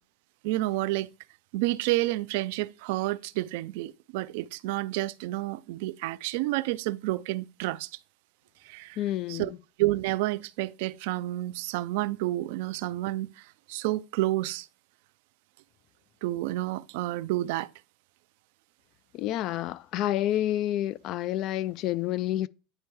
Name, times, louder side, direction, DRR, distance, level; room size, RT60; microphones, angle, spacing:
voice 1, 0.4-1.1 1.5-7.9 8.6-9.0 9.3-9.5 9.8-14.7 16.2-17.7, right 17 dB, 70° right, 0.3 m, -30 dB
voice 2, 9.0-9.6 19.1-22.5, left 13 dB, 55° left, 0.3 m, -29 dB
9.8 x 3.4 x 3.1 m
hypercardioid pair, 90°, 0 cm